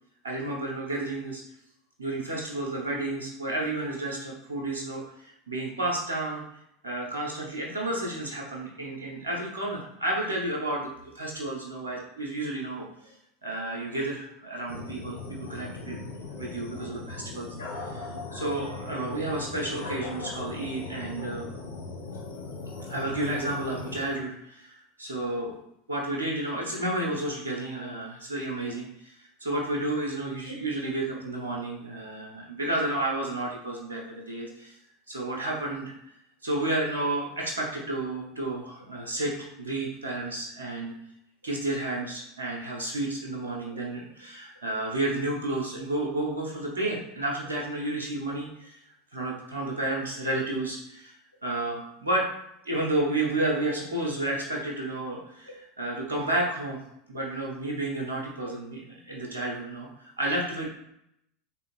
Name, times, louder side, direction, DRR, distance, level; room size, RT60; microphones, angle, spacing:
voice 1, 0.2-1.4 2.0-6.4 6.8-13.1 13.4-17.5 17.7-21.5 22.9-25.6 25.9-34.8 35.1-35.9 36.4-40.9 41.4-48.8 49.1-51.1 51.4-52.3 52.6-56.8 57.1-60.7, right 2 dB, 85° right, -2 dB, 1.0 m, -31 dB
sound 1, 14.7-24.2, left 3 dB, 80° left, 0.7 m, -39 dB
3.6 x 3.3 x 3.2 m, 0.77 s
figure-of-eight pair, 80°, 0 cm